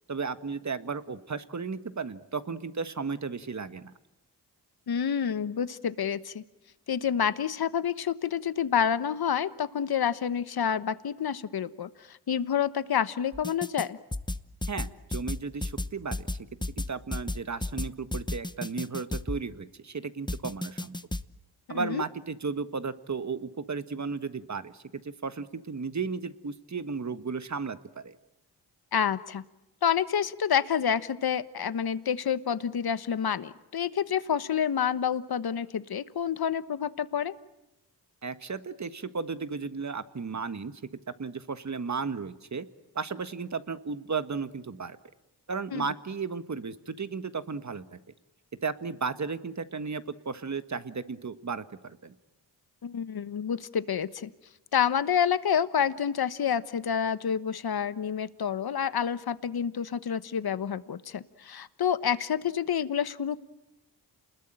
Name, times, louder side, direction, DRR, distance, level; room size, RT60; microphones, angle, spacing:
voice 1, 0.1-3.9 14.7-21.0 21.7-28.1 38.2-40.7 41.2-42.7 42.9-45.0 45.5-48.0 48.6-52.1, right 5 dB, 40° right, 11 dB, 1.5 m, -34 dB
voice 2, 4.9-6.4 6.9-14.0 21.7-22.0 28.9-29.4 29.8-37.3 45.7-45.9 52.8-54.3 54.7-63.4, left 8 dB, 60° left, 14 dB, 1.2 m, -28 dB
sound 1, 13.3-13.9 14.1-19.4 20.3-21.2, left 2 dB, 10° left, 1.0 m, -33 dB
28.5 x 21.0 x 8.9 m, 0.97 s
cardioid pair, 60°, 42 cm